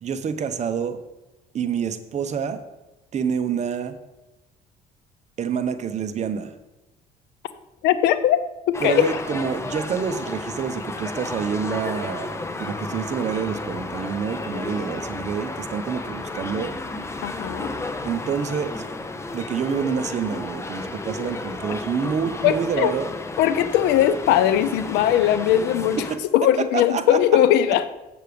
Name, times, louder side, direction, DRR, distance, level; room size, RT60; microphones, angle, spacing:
voice 1, 0.0-1.0 1.5-2.6 3.1-4.0 5.4-6.5 8.8-16.8 18.0-18.8 19.3-23.1 26.1-26.2 26.7-27.2, right 7 dB, 45° right, 9 dB, 0.8 m, -27 dB
voice 2, 7.8-8.4 8.7-9.1 17.2-17.7 22.4-22.9 23.4-26.0 26.3-27.9, left 11 dB, 90° left, 13 dB, 0.6 m, -19 dB
sound 1, 8.7-26.2, left 2 dB, 15° left, 0.7 m, -33 dB
7.9 x 6.5 x 5.1 m, 1.0 s
cardioid pair, 110°, 17 cm